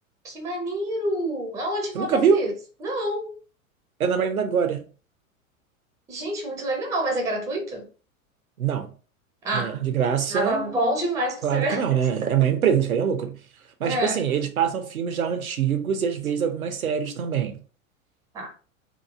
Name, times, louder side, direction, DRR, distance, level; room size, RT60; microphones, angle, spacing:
voice 1, 0.2-2.5 2.8-3.3 6.1-7.8 9.4-9.8 10.3-11.8 13.8-14.2 18.3-18.5, right 1 dB, 10° right, 0.4 m, -27 dB
voice 2, 1.9-2.5 4.0-4.9 8.6-8.9 9.5-10.9 11.4-13.4 13.8-17.6, right 8 dB, 80° right, 0.6 m, -24 dB
2.9 x 2.3 x 2.4 m
figure-of-eight pair, 90°, 42 cm